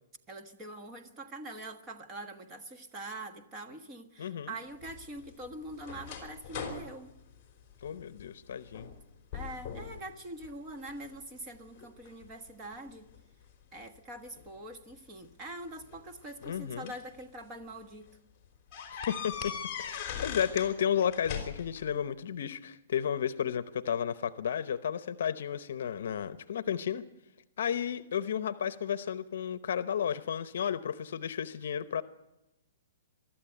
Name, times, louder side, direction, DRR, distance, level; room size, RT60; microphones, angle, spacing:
voice 1, 0.3-7.2 9.3-13.1 13.7-18.1, right 2 dB, 15° right, 1.3 m, -44 dB
voice 2, 4.2-4.6 7.8-8.9 16.4-16.9 18.9-19.5 19.8-27.0 27.6-32.0, left 8 dB, 60° left, 0.8 m, -33 dB
sound 1, 4.8-8.3 8.7-9.0 9.3-10.0 10.4-11.2 11.8-13.2 14.4-14.5 15.7-17.1 17.6-17.8 18.1-18.2 18.7-20.7 21.0-21.8, left 7 dB, 20° left, 3.6 m, -40 dB
23.0 x 13.0 x 9.1 m
hypercardioid pair, 170°, 0 cm